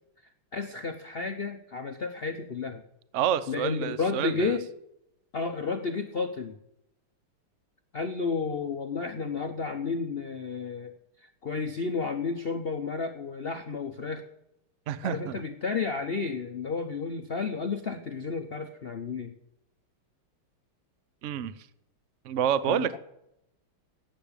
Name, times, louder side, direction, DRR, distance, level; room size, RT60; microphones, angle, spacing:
voice 1, 0.5-2.8 3.5-4.7 5.3-6.5 7.9-10.9 11.2-14.3 15.0-19.3 22.7-23.0, left 4 dB, 70° left, 6 dB, 0.5 m, -32 dB
voice 2, 3.1-4.6 14.9-15.4 21.2-21.5 22.2-23.0, right 9 dB, 80° right, 15 dB, 0.6 m, -28 dB
12.0 x 9.0 x 8.8 m, 0.83 s
omnidirectional pair, 2.3 m